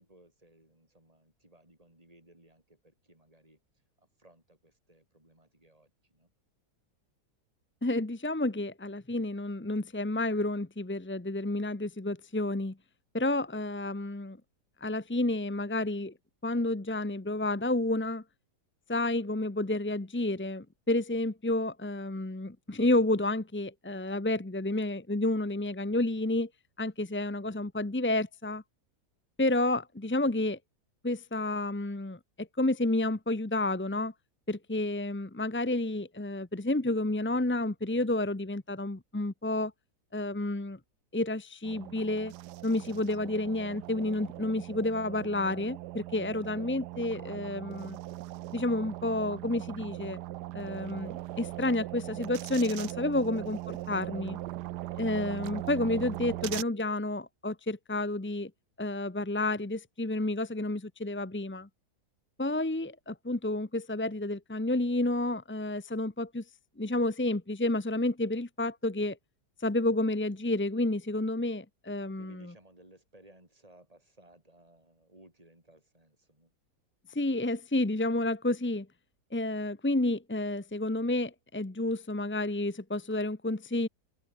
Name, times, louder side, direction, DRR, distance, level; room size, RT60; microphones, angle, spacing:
voice 1, 0.0-3.6 4.0-6.3 71.9-76.5, right 1 dB, 20° right, 7.6 m, -60 dB
voice 2, 7.8-12.7 13.1-14.4 14.8-16.1 16.4-18.2 18.9-26.5 26.8-28.6 29.4-30.6 31.0-34.1 34.5-39.7 40.1-40.8 41.1-42.3 42.6-48.0 48.5-50.2 50.5-54.4 55.0-58.5 58.8-61.7 62.4-66.4 66.8-69.2 69.6-72.5 77.1-78.9 79.3-83.9, left 2 dB, 10° left, 0.5 m, -30 dB
sound 1, 41.6-56.6, right 16 dB, 90° right, 1.2 m, -40 dB
omnidirectional pair, 1.7 m